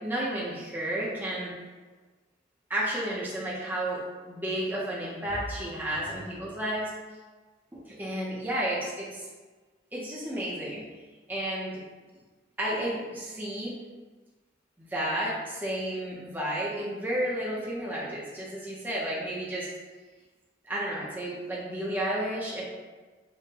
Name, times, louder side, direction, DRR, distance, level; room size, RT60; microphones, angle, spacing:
voice 1, 0.0-1.5 2.7-6.9 7.7-9.3 9.9-10.8 11.3-11.8 12.6-13.8 14.8-19.7 20.6-22.6, right 1 dB, 10° right, -7 dB, 0.6 m, -32 dB
5.2 x 2.1 x 2.8 m, 1.3 s
head